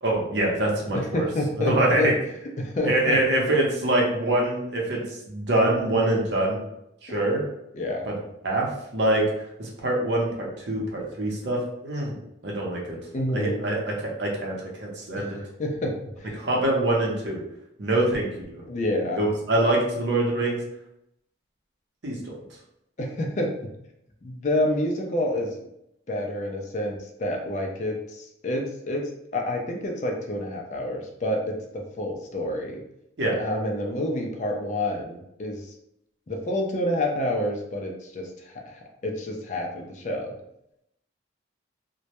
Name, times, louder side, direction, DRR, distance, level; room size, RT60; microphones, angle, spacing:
voice 1, 0.0-1.2 1.6-2.1 2.8-6.6 7.0-7.4 8.1-8.2 8.4-9.2 9.6-12.1 12.4-13.0 13.3-15.4 16.3-17.4 17.8-18.6 19.2-20.6 22.0-22.3 33.2-33.4, right 1 dB, 70° right, -2 dB, 0.7 m, -24 dB
voice 2, 0.9-2.1 2.6-3.2 7.7-8.1 13.1-13.6 15.2-15.3 15.6-16.4 18.7-19.2 23.0-23.5 24.2-25.6 26.1-32.8 33.3-35.7 36.3-40.4, left 1 dB, 40° left, 1 dB, 0.4 m, -28 dB
2.1 x 2.0 x 2.8 m, 0.81 s
head